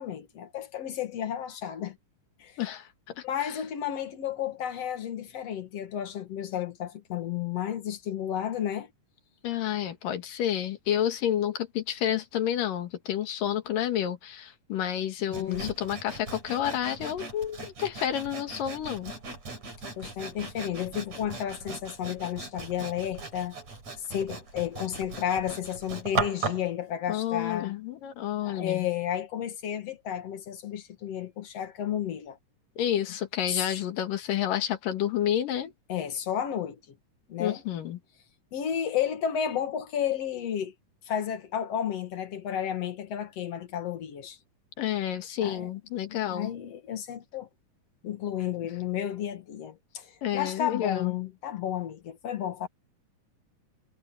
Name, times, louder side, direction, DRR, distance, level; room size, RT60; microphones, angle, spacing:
voice 1, 0.0-2.0 2.4-2.6 3.2-8.9 15.3-15.7 20.0-23.6 24.0-27.7 28.4-32.4 33.5-33.9 35.9-37.0 37.3-37.6 38.5-40.7 41.1-44.4 45.4-45.7 46.1-47.5 48.0-52.7, left 9 dB, 55° left, 2.4 m, -32 dB
voice 2, 2.6-3.6 9.4-19.1 27.1-28.9 32.8-35.7 37.4-38.0 44.8-46.5 50.2-51.2, left 10 dB, 75° left, 3.4 m, -30 dB
Sawing, 15.3-26.7, right 4 dB, 50° right, 7.4 m, -38 dB
omnidirectional pair, 4.0 m